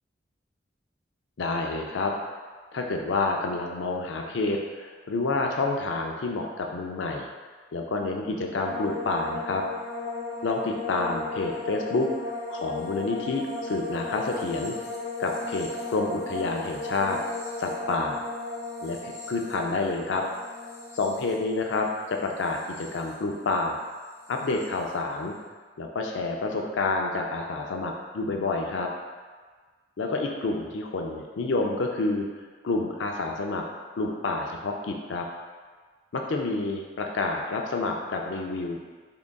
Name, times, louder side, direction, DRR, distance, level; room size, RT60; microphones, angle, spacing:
voice 1, 1.4-2.1 2.7-7.3 7.7-9.6 10.4-14.7 15.2-17.2 17.6-18.2 18.8-20.2 20.9-23.8 24.3-25.3 25.8-28.9 30.0-32.3 32.6-33.6 34.0-35.3 36.1-38.8, left 3 dB, 80° left, 1 dB, 0.4 m, -29 dB
sound 1, 8.5-23.8 24.0-24.7, left 3 dB, 15° left, 0.6 m, -36 dB
3.7 x 3.6 x 2.2 m, 1.4 s
head